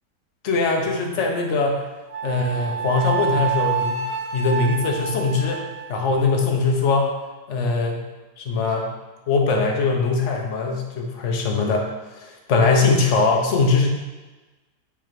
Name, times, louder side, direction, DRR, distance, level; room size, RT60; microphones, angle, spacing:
voice 1, 0.4-1.8 2.2-4.1 4.3-5.6 5.9-7.1 7.5-8.0 8.4-8.9 9.3-11.9 12.1-13.9, left 3 dB, 50° left, 1 dB, 1.2 m, -21 dB
Wind instrument woodwind instrument, 2.1-6.5, right 7 dB, 85° right, 1.3 m, -28 dB
6.9 x 3.5 x 5.1 m, 1.2 s
omnidirectional pair, 1.8 m